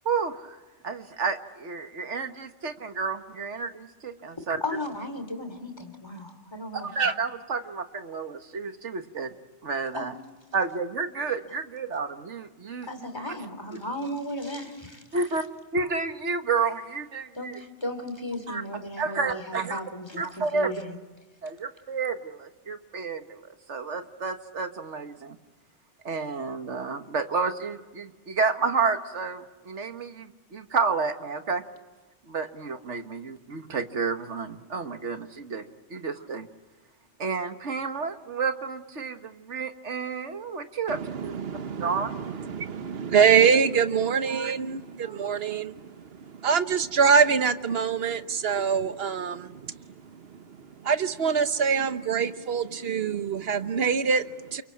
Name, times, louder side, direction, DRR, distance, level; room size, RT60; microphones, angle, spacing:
voice 1, 0.1-0.6 0.8-4.6 6.7-9.3 9.6-10.1 10.5-12.9 13.7-13.8 15.1-15.4 15.7-17.6 18.5-18.6 19.0-19.8 20.1-20.7 21.4-25.4 26.0-31.6 32.3-36.5 37.2-41.4 41.8-42.2 44.3-44.5 45.0-45.5, right 4 dB, 90° right, 8 dB, 1.8 m, -30 dB
voice 2, 4.4-6.9 9.9-10.1 12.8-15.0 17.3-20.2 20.5-21.0, left 1 dB, 20° left, 7 dB, 3.1 m, -35 dB
voice 3, 40.9-54.6, right 6 dB, 60° right, 11 dB, 1.3 m, -25 dB
29.5 x 23.0 x 8.6 m, 1.2 s
omnidirectional pair, 1.2 m